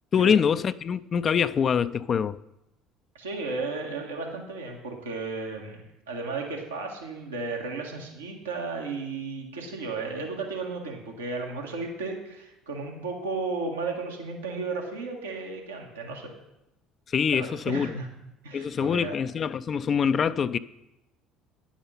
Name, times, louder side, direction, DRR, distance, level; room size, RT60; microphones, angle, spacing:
voice 1, 0.1-2.4 17.1-17.9 18.5-20.6, left 7 dB, 40° left, 0.4 m, -24 dB
voice 2, 3.1-16.3 17.3-18.1 18.4-19.2, right 3 dB, 80° right, 1.6 m, -34 dB
10.0 x 7.3 x 5.6 m
figure-of-eight pair, 60°, 0 cm